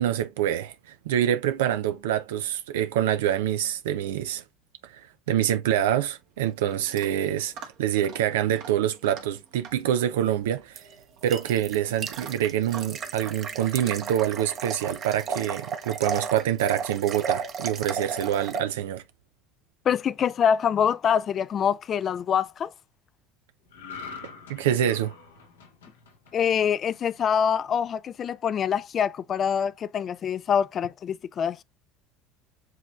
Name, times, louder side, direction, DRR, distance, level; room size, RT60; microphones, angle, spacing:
voice 1, 0.0-4.4 4.8-7.5 7.8-10.8 11.2-19.0 24.5-25.1, right 11 dB, 80° right, 0.3 m, -26 dB
Chewing mastication / Dog, 5.8-14.8, right 6 dB, 65° right, 1.2 m, -48 dB
sound 1, 10.8-18.6, right 6 dB, 45° right, 0.9 m, -34 dB
voice 2, 19.9-22.7 26.3-31.6, left 8 dB, 45° left, 0.3 m, -25 dB
sound 2, 23.7-27.2 27.6-27.8, left 5 dB, 85° left, 0.9 m, -44 dB
7.5 x 3.0 x 2.2 m
hypercardioid pair, 70°, 0 cm